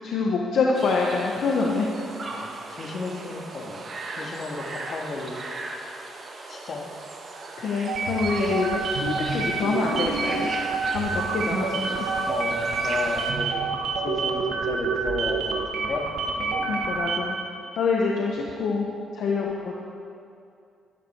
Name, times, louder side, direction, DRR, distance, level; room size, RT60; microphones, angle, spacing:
voice 1, 0.0-1.9 7.6-10.5 10.9-12.0 16.7-17.3 17.8-18.9 19.1-19.7, left 4 dB, 70° left, -2 dB, 1.2 m, -26 dB
sound 1, 0.7-13.3, right 3 dB, 40° right, 1.8 m, -38 dB
voice 2, 2.3-3.8 4.2-5.4 6.5-6.8 12.2-13.7 14.0-16.1 16.4-16.7, left 3 dB, 50° left, 1 dB, 2.0 m, -33 dB
sound 2, 7.9-17.4, right 4 dB, 80° right, 1.5 m, -27 dB
13.0 x 12.5 x 4.7 m, 2.4 s
cardioid pair, 90°, 0 cm